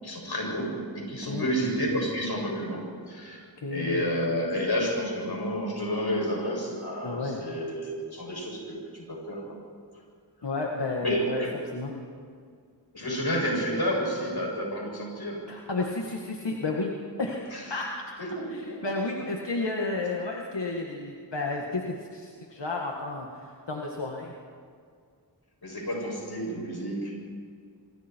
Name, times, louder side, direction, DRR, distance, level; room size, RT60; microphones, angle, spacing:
voice 1, 0.0-3.4 3.7-9.4 11.0-11.5 12.9-15.5 17.5-17.7 18.2-18.8 25.6-27.1, equal, 65° left, -2 dB, 7.5 m, -30 dB
voice 2, 3.6-4.0 7.0-7.4 10.4-11.4 11.7-11.9 15.5-16.9 17.2-17.4 17.7-17.9 18.5-24.3, left 3 dB, 80° left, -1 dB, 2.0 m, -32 dB
26.0 x 26.0 x 4.7 m, 2.1 s
wide cardioid pair, 50°, 42 cm